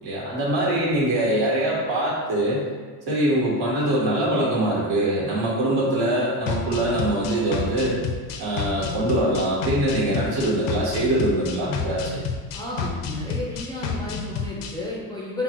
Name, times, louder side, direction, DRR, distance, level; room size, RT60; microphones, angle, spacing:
voice 1, 0.0-2.6 3.1-8.0 8.4-12.2, right 1 dB, 65° right, -5 dB, 1.4 m, -23 dB
sound 1, 6.5-14.7, left 5 dB, 90° left, 0.6 m, -30 dB
voice 2, 12.5-15.4, left 2 dB, 10° left, -5 dB, 0.4 m, -32 dB
4.2 x 2.0 x 4.4 m, 1.5 s
cardioid pair, 130°, 41 cm